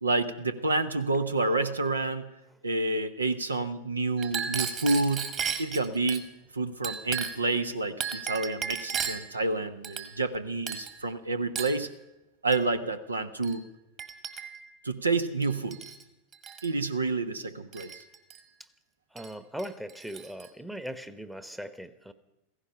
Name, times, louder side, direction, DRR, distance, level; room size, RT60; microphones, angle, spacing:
voice 1, 0.0-2.3 2.6-5.3 5.6-6.3 6.5-11.9 12.4-13.6 14.8-15.8 16.6-18.0, right 3 dB, 80° right, 10 dB, 0.9 m, -29 dB
Chink clink, 4.2-6.2 6.8-7.5 8.0-9.3 9.8-10.4 10.7-11.0 11.6-11.8 12.5-12.7 13.4-13.6 14.0-14.7 15.4-16.0 16.3-16.7 17.7-18.4 19.2-19.3 19.6-20.5, right 7 dB, 30° right, 1.7 m, -35 dB
voice 2, 19.1-22.1, equal, 5° right, 12 dB, 1.0 m, -39 dB
16.5 x 15.5 x 5.6 m, 0.94 s
figure-of-eight pair, 90°, 0 cm